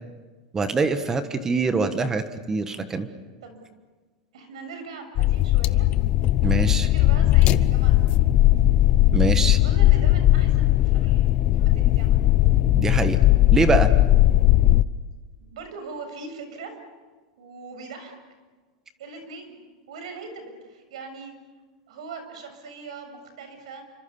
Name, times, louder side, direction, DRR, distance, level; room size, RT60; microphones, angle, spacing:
voice 1, 0.5-3.1 6.4-6.9 9.1-9.6 12.7-13.2 13.5-13.9, right 4 dB, 15° right, 10 dB, 1.4 m, -24 dB
voice 2, 4.3-5.9 6.4-8.4 9.5-12.3 15.5-16.8 17.4-18.1 19.0-19.6 19.9-21.4 21.9-23.8, right 4 dB, 85° right, 7 dB, 6.9 m, -40 dB
sound 1, 5.2-14.8, left 15 dB, 40° left, 0.7 m, -18 dB
29.0 x 25.5 x 7.1 m, 1.4 s
supercardioid pair, 145°, 3 cm